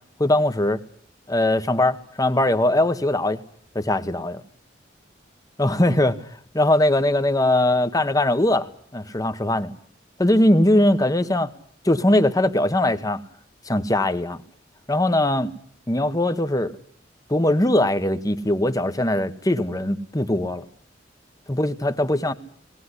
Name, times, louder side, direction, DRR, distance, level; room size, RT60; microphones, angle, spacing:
voice 1, 0.2-0.8 1.3-3.4 3.7-4.4 5.6-9.7 10.2-11.5 11.8-13.2 13.7-14.4 14.9-15.5 15.9-16.7 17.3-20.6 21.5-22.3, left 1 dB, 20° left, 10 dB, 1.2 m, -21 dB
19.0 x 18.5 x 9.9 m, 0.62 s
head